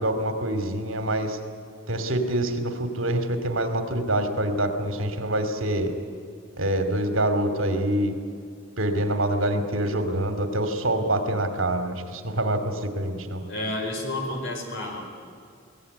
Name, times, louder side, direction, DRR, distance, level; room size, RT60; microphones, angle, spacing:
voice 1, 0.0-1.4 1.9-5.9 6.6-8.1 8.8-13.4, right 1 dB, 80° right, 7 dB, 2.5 m, -25 dB
voice 2, 13.5-15.0, left 1 dB, 70° left, 2 dB, 4.6 m, -30 dB
22.5 x 17.0 x 9.6 m, 2.3 s
head